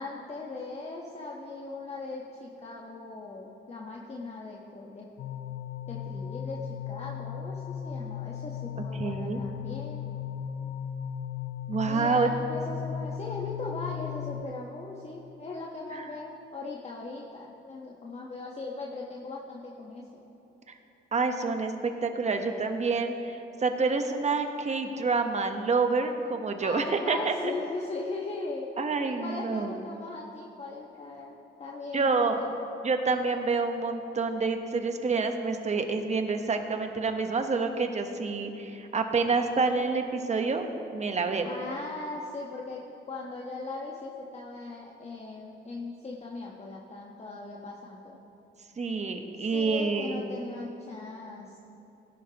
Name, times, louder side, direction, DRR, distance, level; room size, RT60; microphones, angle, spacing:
voice 1, 0.0-5.1 5.9-10.1 11.9-20.1 26.6-28.7 29.0-31.3 31.6-32.5 41.4-48.2 49.5-51.6, left 3 dB, 30° left, -3 dB, 1.2 m, -39 dB
sound 1, 5.2-14.4, left 8 dB, 65° left, 0.5 m, -36 dB
voice 2, 8.9-9.4 11.7-12.3 15.9-16.1 20.7-20.8 21.1-27.3 28.8-29.7 31.9-32.4 32.8-40.7 40.9-41.5 48.8-50.2, right 4 dB, 35° right, 6 dB, 1.1 m, -28 dB
17.5 x 11.0 x 3.0 m, 3.0 s
cardioid pair, 90°, 20 cm